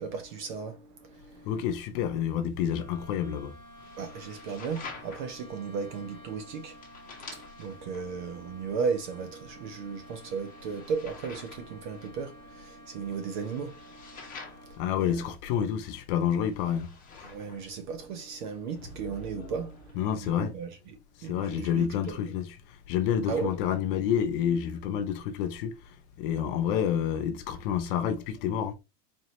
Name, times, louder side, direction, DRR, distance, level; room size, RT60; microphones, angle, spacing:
voice 1, 0.0-1.5 4.0-6.8 7.3-15.2 15.6-15.7 17.2-22.2 23.3-23.5, right 5 dB, 35° right, 0.4 m, -36 dB
voice 2, 1.5-3.5 14.8-16.9 20.0-20.5 21.2-28.7, left 9 dB, 35° left, 0.5 m, -29 dB
sound 1, 2.5-19.9, left 3 dB, 15° left, 1.2 m, -49 dB
sound 2, 2.6-15.3, equal, 60° right, 2.5 m, -52 dB
4.3 x 2.9 x 2.8 m
supercardioid pair, 145°, 49 cm